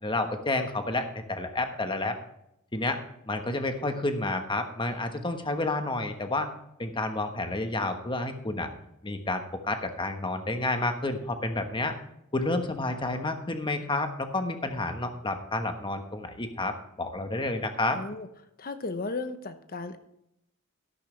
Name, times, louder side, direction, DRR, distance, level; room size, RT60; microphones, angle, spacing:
voice 1, 0.0-2.2 2.7-3.0 3.3-6.5 6.8-8.7 9.0-11.9 12.3-16.7 17.0-18.0, left 2 dB, 25° left, 6 dB, 1.3 m, -30 dB
voice 2, 17.9-18.3 18.6-20.0, left 3 dB, 45° left, 10 dB, 1.0 m, -35 dB
12.5 x 11.5 x 3.3 m, 0.79 s
head